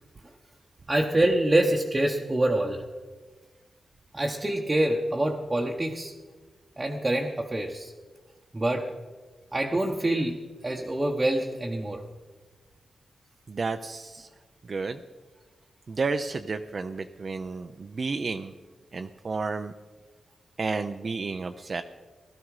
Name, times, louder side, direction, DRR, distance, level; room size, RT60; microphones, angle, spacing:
voice 1, 0.9-2.8 4.1-6.1 6.8-7.9 8.5-9.0 9.5-12.0, right 1 dB, 20° right, 0 dB, 0.9 m, -26 dB
voice 2, 13.5-14.3 14.6-15.0 15.9-18.5 18.9-19.7 20.6-21.8, right 4 dB, 45° right, 7 dB, 0.5 m, -31 dB
16.5 x 13.0 x 4.8 m, 1.3 s
wide cardioid pair, 125°, 0 cm